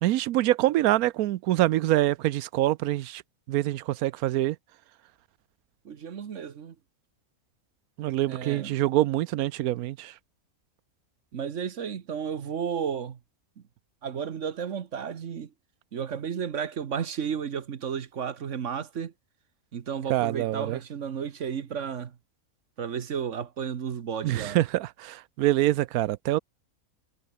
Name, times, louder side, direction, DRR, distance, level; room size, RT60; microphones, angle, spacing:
voice 1, 0.0-3.2 3.5-4.6 8.0-10.1 20.1-20.8 24.2-26.4, right 15 dB, 90° right, 1.1 m, -25 dB
voice 2, 5.8-6.7 8.3-8.8 11.3-13.2 13.6-13.7 14.0-15.5 15.9-19.1 19.7-22.1 22.8-24.6, right 7 dB, 60° right, 1.4 m, -33 dB
omnidirectional pair, 1.5 m